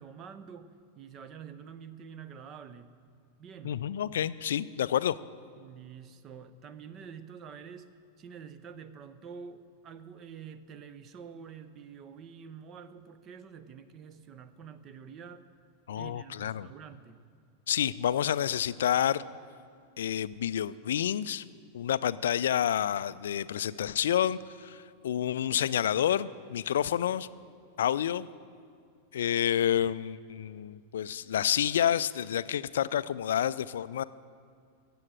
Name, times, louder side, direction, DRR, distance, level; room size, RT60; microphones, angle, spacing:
voice 1, 0.0-2.9 3.4-3.8 5.6-7.9 8.2-15.5 15.9-17.2, right 7 dB, 30° right, 13 dB, 0.7 m, -47 dB
voice 2, 3.6-5.2 15.9-16.7 17.7-19.2 20.0-21.4 21.7-27.3 27.8-28.3 29.1-34.0, left 10 dB, 60° left, 17 dB, 0.3 m, -29 dB
17.0 x 7.7 x 7.6 m, 2.2 s
figure-of-eight pair, 90°, 0 cm